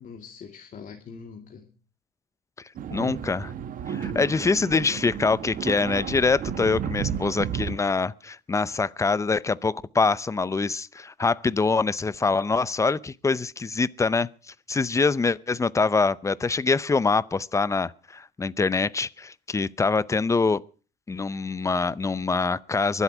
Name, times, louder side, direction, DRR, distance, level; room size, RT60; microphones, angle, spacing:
voice 1, 0.0-1.7 4.0-4.3, left 6 dB, 50° left, 2.3 m, -43 dB
sound 1, 2.8-7.8, right 8 dB, 55° right, 1.3 m, -33 dB
voice 2, 2.9-3.5 3.9-14.3 14.7-20.6 21.1-23.0, left 4 dB, 15° left, 0.6 m, -24 dB
23.0 x 8.2 x 6.1 m
cardioid pair, 110°, 17 cm